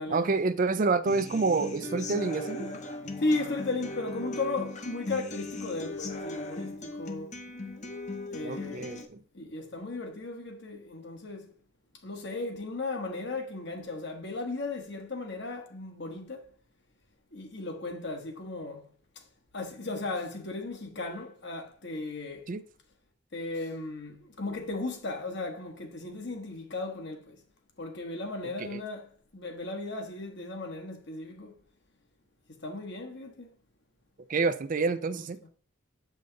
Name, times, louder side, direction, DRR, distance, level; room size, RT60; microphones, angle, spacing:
voice 1, 0.1-2.7 8.4-9.2 22.5-22.6 28.6-28.8 34.3-35.4, right 4 dB, 40° right, 0.4 m, -28 dB
Human voice / Acoustic guitar, 1.1-9.0, left 2 dB, 35° left, 0.9 m, -38 dB
voice 2, 3.2-7.3 8.3-9.0 9.3-11.5 12.0-16.5 17.3-19.2 19.5-22.5 23.3-27.4 27.8-31.6 32.6-33.5 35.1-35.3, left 2 dB, 55° left, 1.4 m, -36 dB
7.8 x 5.2 x 3.9 m
head